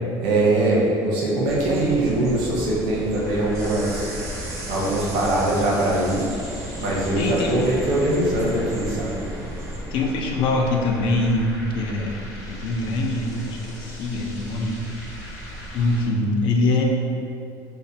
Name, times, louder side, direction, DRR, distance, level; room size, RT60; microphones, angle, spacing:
voice 1, 0.2-4.1 4.7-6.3 6.8-9.1, right 2 dB, 80° right, -5 dB, 0.7 m, -22 dB
sound 1, 1.4-9.8, right 1 dB, 35° right, 0.4 m, -35 dB
sound 2, 3.2-16.1, equal, 40° left, 0.7 m, -38 dB
voice 2, 7.2-7.6 9.9-12.2 12.5-14.8 15.7-16.8, left 2 dB, 65° left, 1 dB, 0.4 m, -23 dB
2.7 x 2.0 x 2.6 m, 2.4 s
cardioid pair, 125°, 9 cm